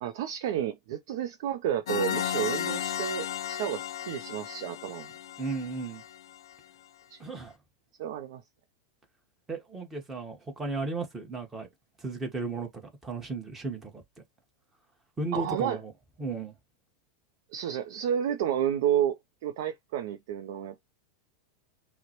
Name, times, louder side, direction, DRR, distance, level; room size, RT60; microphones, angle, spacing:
voice 1, 0.0-5.1 7.1-7.2 8.0-8.4 15.3-15.8 17.5-20.7, right 10 dB, 65° right, 0.5 m, -31 dB
sound 1, 1.9-6.5, left 10 dB, 85° left, 0.4 m, -34 dB
voice 2, 5.4-6.0 7.2-7.5 9.5-11.7 12.0-12.7 13.0-14.0 15.2-15.9 16.2-16.5, right 3 dB, 10° right, 1.2 m, -34 dB
5.6 x 2.1 x 3.0 m
supercardioid pair, 130°, 2 cm